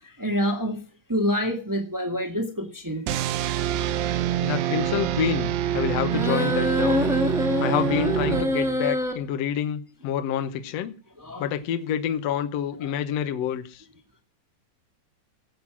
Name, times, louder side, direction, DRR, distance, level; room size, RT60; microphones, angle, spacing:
voice 1, 0.2-0.8 1.1-3.0 11.2-11.5, equal, 20° right, 4 dB, 0.4 m, -26 dB
sound 1, 3.1-8.9, right 11 dB, 80° right, 2.6 m, -26 dB
voice 2, 4.4-7.1 7.6-10.9 11.4-13.8, left 9 dB, 70° left, 9 dB, 1.6 m, -28 dB
sound 2, 6.1-9.1, left 1 dB, ahead, 1.0 m, -25 dB
17.5 x 7.8 x 6.0 m, 0.40 s
omnidirectional pair, 4.0 m